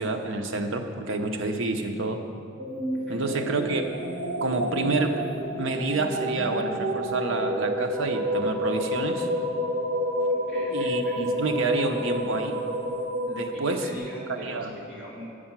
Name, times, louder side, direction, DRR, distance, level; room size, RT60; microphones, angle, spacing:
voice 1, 0.0-2.2 3.1-3.9 4.4-5.1 5.6-9.3 10.7-12.6 13.3-14.0 14.3-14.7, right 3 dB, 65° right, 5 dB, 0.7 m, -28 dB
sound 1, 2.6-14.0, equal, 85° right, 1.1 m, -29 dB
sound 2, 3.3-13.1, left 2 dB, 30° left, 0.4 m, -42 dB
voice 2, 10.3-11.2 13.5-15.2, right 1 dB, 5° right, -10 dB, 2.5 m, -41 dB
8.8 x 4.9 x 7.3 m, 2.5 s
head